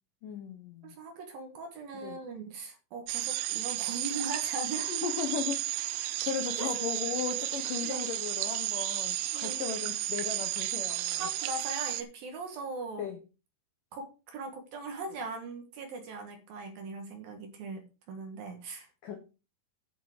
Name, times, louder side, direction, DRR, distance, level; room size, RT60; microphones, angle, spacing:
voice 1, 0.2-1.0 1.9-2.2 4.7-11.3 13.0-13.2 19.0-19.2, left 8 dB, 80° left, 7 dB, 1.9 m, -37 dB
voice 2, 0.8-4.9 6.6-7.0 7.8-8.1 9.3-9.6 11.1-13.1 13.9-17.8 18.1-19.2, right 3 dB, 60° right, 5 dB, 2.7 m, -40 dB
sound 1, 3.1-12.0, right 15 dB, 80° right, 2.7 m, -33 dB
10.0 x 7.4 x 4.9 m, 0.32 s
omnidirectional pair, 5.6 m